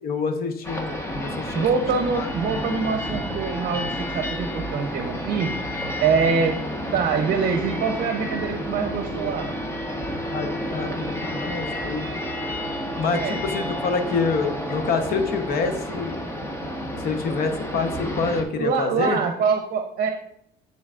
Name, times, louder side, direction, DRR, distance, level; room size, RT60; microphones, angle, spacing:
voice 1, 0.0-1.7 2.1-2.3 3.7-3.9 10.3-12.1 12.9-16.2 17.0-19.2, left 4 dB, 60° left, 6 dB, 0.9 m, -27 dB
sound 1, 0.6-18.4, equal, 15° left, 1.1 m, -30 dB
voice 2, 1.5-5.5 6.0-6.6 6.9-9.5 13.1-13.4 18.6-20.1, right 5 dB, 60° right, 5 dB, 0.7 m, -24 dB
9.9 x 3.9 x 2.4 m, 0.74 s
cardioid pair, 110°, 17 cm